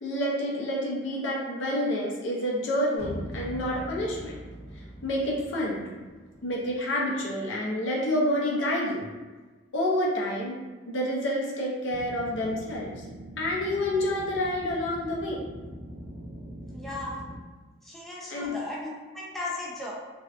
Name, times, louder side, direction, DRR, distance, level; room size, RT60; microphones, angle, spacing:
voice 1, 0.0-4.4 5.0-5.9 6.4-9.1 9.7-10.5 10.9-12.9 13.4-15.4 18.3-18.6, left 1 dB, 75° left, -3 dB, 0.6 m, -28 dB
sound 1, 3.0-7.0, equal, 50° left, 1.0 m, -42 dB
sound 2, 11.9-17.4, right 1 dB, 40° right, 0.8 m, -43 dB
voice 2, 16.7-17.2 17.8-19.9, left 2 dB, ahead, -5 dB, 0.3 m, -36 dB
2.5 x 2.2 x 2.3 m, 1.3 s
head